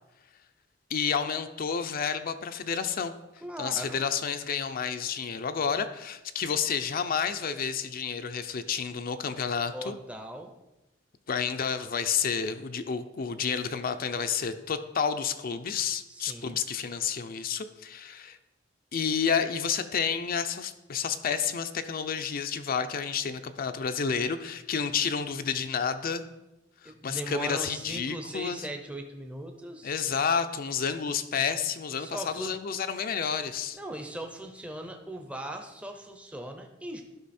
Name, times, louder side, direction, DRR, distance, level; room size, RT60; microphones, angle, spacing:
voice 1, 0.9-3.1 3.6-10.0 11.3-18.4 18.9-26.2 26.8-28.6 29.8-33.8, left 6 dB, 50° left, 9 dB, 0.5 m, -30 dB
voice 2, 3.4-4.1 9.7-10.5 16.1-16.6 26.8-29.9 32.0-32.6 33.7-37.0, right 1 dB, 5° right, 4 dB, 0.6 m, -39 dB
12.0 x 5.4 x 4.2 m, 0.97 s
head